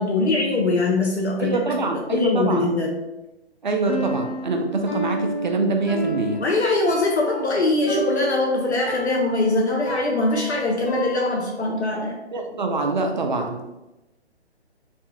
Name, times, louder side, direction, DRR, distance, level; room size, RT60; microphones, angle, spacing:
voice 1, 0.0-1.6 1.9-2.9 6.4-12.2, left 2 dB, 75° left, 0 dB, 0.7 m, -22 dB
voice 2, 1.4-2.7 3.6-6.4 12.3-13.6, right 3 dB, 45° right, 4 dB, 0.4 m, -24 dB
Piano, 3.9-11.7, right 1 dB, 5° left, 0.5 m, -31 dB
3.2 x 2.2 x 2.8 m, 0.98 s
figure-of-eight pair, 140°, 34 cm